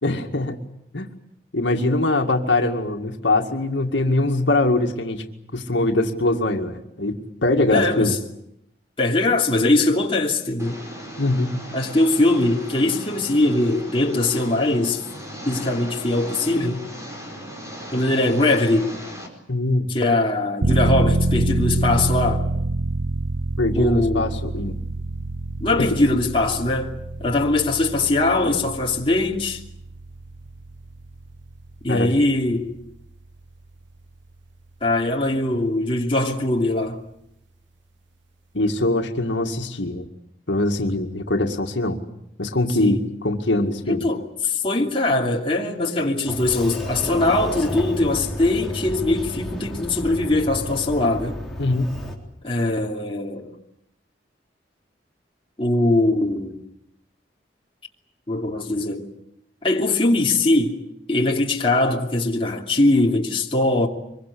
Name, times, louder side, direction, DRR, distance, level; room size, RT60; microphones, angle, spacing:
voice 1, 0.0-0.6 0.9-1.1 1.5-5.2 5.5-8.2 11.2-11.5 19.5-19.9 23.6-24.8 25.7-25.9 31.9-32.1 38.5-40.1 40.5-42.0 42.4-44.1 51.6-51.9, left 2 dB, 85° left, 2.1 m, -22 dB
voice 2, 7.7-8.1 9.0-10.8 11.7-15.0 15.5-16.8 17.9-18.9 19.9-22.4 23.8-24.3 25.6-29.6 31.8-32.7 34.8-37.0 42.8-43.0 43.9-51.4 52.4-53.5 55.6-56.6 58.3-59.1 59.6-60.8 61.1-63.9, left 2 dB, 30° left, 2.8 m, -21 dB
Engine, 10.6-19.3, equal, 15° right, 4.8 m, -37 dB
sound 1, 20.6-33.1 33.5-33.6, right 2 dB, 85° right, 1.0 m, -27 dB
Sliding door, 46.3-52.1, equal, ahead, 3.8 m, -32 dB
25.0 x 23.0 x 8.5 m
head